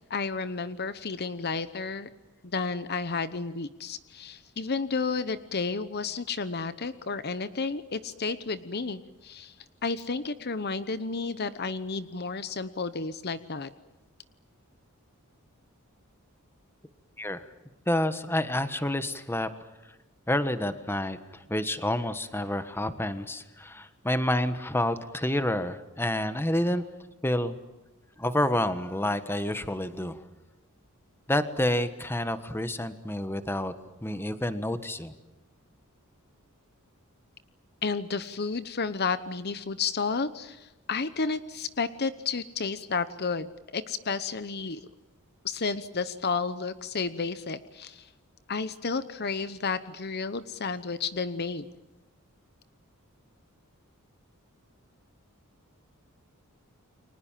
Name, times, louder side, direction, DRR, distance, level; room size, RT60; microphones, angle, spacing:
voice 1, 0.1-2.1 2.4-9.5 9.8-13.7 37.8-43.5 43.7-44.8 45.4-48.1 48.5-51.7, left 4 dB, 45° left, 13 dB, 0.9 m, -32 dB
voice 2, 17.2-17.5 17.9-19.5 20.3-26.8 27.2-27.5 28.2-30.2 31.3-33.7 34.0-35.1, left 1 dB, 10° left, 10 dB, 1.4 m, -29 dB
30.0 x 24.5 x 7.5 m, 1.1 s
head